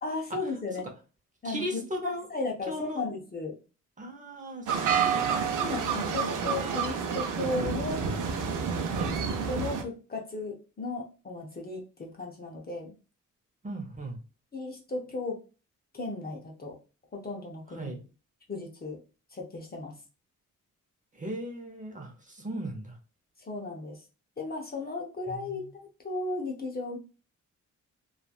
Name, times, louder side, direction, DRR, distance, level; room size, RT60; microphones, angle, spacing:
voice 1, 0.0-0.8 1.4-3.6 5.6-8.1 9.5-12.9 14.5-15.4 15.9-16.8 17.1-17.9 18.5-19.0 19.3-20.0 23.4-24.0 24.4-27.0, left 3 dB, 30° left, 1 dB, 0.7 m, -35 dB
voice 2, 1.4-2.3 2.7-3.0 4.0-4.8 5.1-5.4 8.8-9.2 13.6-14.2 17.8-18.0 21.2-22.9 25.3-25.6, right 1 dB, 25° right, 2 dB, 0.8 m, -37 dB
sound 1, 4.7-9.8, right 6 dB, 80° right, 0.6 m, -29 dB
3.0 x 2.4 x 2.3 m, 0.33 s
cardioid pair, 95°, 31 cm